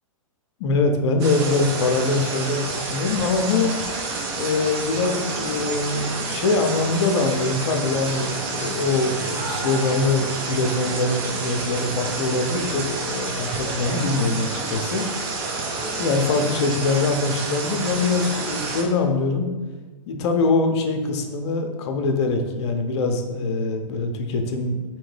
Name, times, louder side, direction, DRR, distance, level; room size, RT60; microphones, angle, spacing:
voice 1, 0.6-3.8 4.4-15.0 16.0-19.5 20.1-24.8, left 3 dB, 55° left, 5 dB, 0.5 m, -23 dB
sound 1, 1.2-18.8, right 3 dB, 50° right, 0.7 m, -29 dB
3.5 x 2.9 x 3.2 m, 1.3 s
hypercardioid pair, 115°, 17 cm